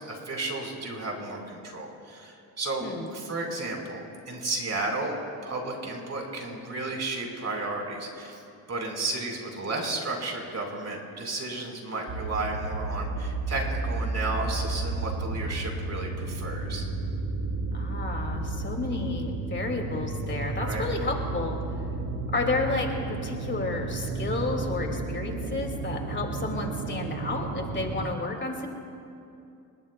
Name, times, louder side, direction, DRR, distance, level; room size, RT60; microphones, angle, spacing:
voice 1, 0.1-5.2 5.4-8.4 8.7-16.8 20.6-20.9, right 2 dB, 40° right, 0 dB, 4.7 m, -33 dB
voice 2, 2.8-3.1 17.7-21.6 22.3-28.7, left 3 dB, 30° left, 2 dB, 2.4 m, -31 dB
sound 1, 12.1-28.1, right 3 dB, 85° right, 3.1 m, -32 dB
29.5 x 20.0 x 2.3 m, 2.6 s
cardioid pair, 80°, 38 cm